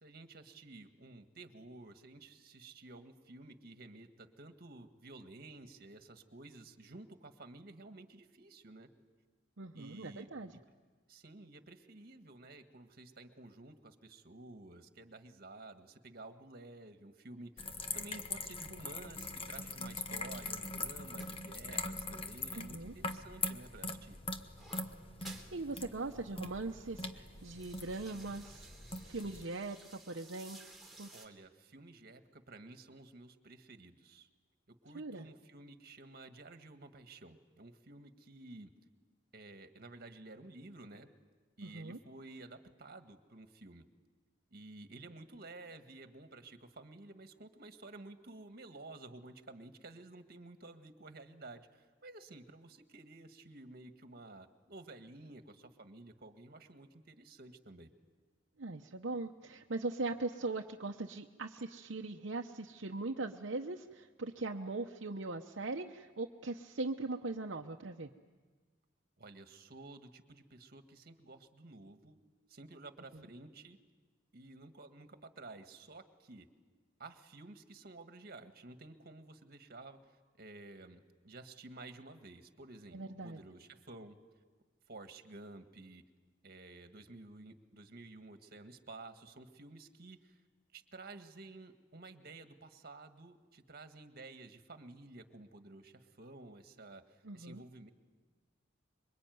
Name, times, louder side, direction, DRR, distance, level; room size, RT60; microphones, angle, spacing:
voice 1, 0.0-8.9 9.7-10.6 11.1-24.2 31.1-34.3 34.7-38.7 39.3-41.1 41.6-43.9 44.5-57.9 69.2-72.2 72.5-73.8 74.3-76.5 77.0-84.2 84.9-86.0 86.4-90.4 90.7-97.9, right 2 dB, 55° right, 8 dB, 1.8 m, -52 dB
voice 2, 9.6-10.5 22.5-22.9 25.2-28.7 29.1-30.6 31.0-31.1 34.9-35.2 41.6-42.0 58.6-68.1 82.9-83.4 97.2-97.6, right 3 dB, 70° right, 1 dB, 0.9 m, -40 dB
sound 1, 17.6-29.4, left 3 dB, 30° left, 1.3 m, -42 dB
sound 2, 20.6-23.1 23.4-25.6 25.9-26.0 26.3-26.7 27.1-31.3, right 2 dB, ahead, 3.3 m, -57 dB
26.5 x 23.0 x 9.4 m, 1.4 s
head